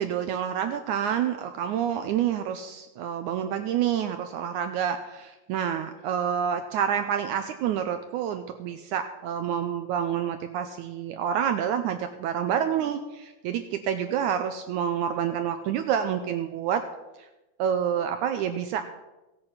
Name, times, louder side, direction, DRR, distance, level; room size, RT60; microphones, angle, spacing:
voice 1, 0.0-16.8 17.6-18.8, right 9 dB, 85° right, 8 dB, 1.8 m, -28 dB
16.0 x 8.7 x 5.7 m, 1.1 s
omnidirectional pair, 4.1 m